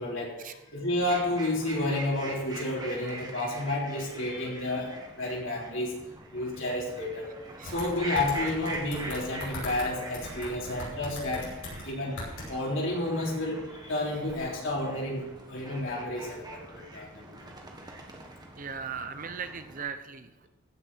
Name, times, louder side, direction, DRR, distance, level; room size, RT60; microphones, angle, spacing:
voice 1, 0.0-5.9 6.3-7.3 7.6-11.5 11.8-12.2 12.5-17.8, left 1 dB, 60° left, -3 dB, 3.9 m, -31 dB
sound 1, 0.9-19.9, right 2 dB, 20° right, 1.4 m, -43 dB
sound 2, 7.7-9.9 10.1-11.8 12.2-12.5, left 1 dB, 85° left, 5.7 m, -39 dB
voice 2, 18.6-20.5, right 6 dB, 35° right, 9 dB, 0.7 m, -38 dB
16.0 x 6.6 x 6.3 m, 0.98 s
head